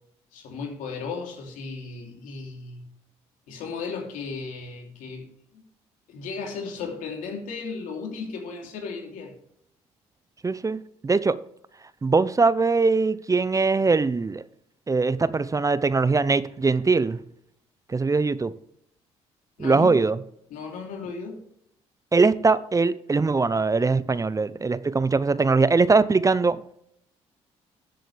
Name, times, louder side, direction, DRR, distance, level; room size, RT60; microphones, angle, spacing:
voice 1, 0.3-2.8 3.5-5.3 5.5-5.6 6.1-9.3 19.6-20.0 20.5-21.5, left 4 dB, 75° left, 3.0 m, -35 dB
voice 2, 10.4-11.4 12.0-14.4 14.9-17.2 17.9-18.5 19.6-20.2 22.1-26.6, right 4 dB, 25° right, 0.7 m, -21 dB
13.5 x 7.7 x 3.4 m
supercardioid pair, 60°, 14 cm